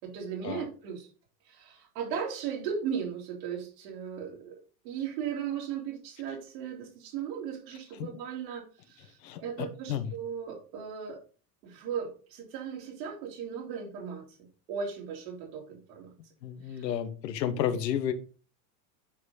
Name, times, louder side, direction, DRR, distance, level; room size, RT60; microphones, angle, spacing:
voice 1, 0.0-1.1 1.5-11.2 11.6-14.2 14.7-16.1 16.7-16.9, right 7 dB, 75° right, -1 dB, 3.6 m, -37 dB
voice 2, 9.2-10.1 16.4-18.1, left 9 dB, 85° left, 10 dB, 1.3 m, -32 dB
9.3 x 5.2 x 4.1 m, 0.37 s
supercardioid pair, 105°, 49 cm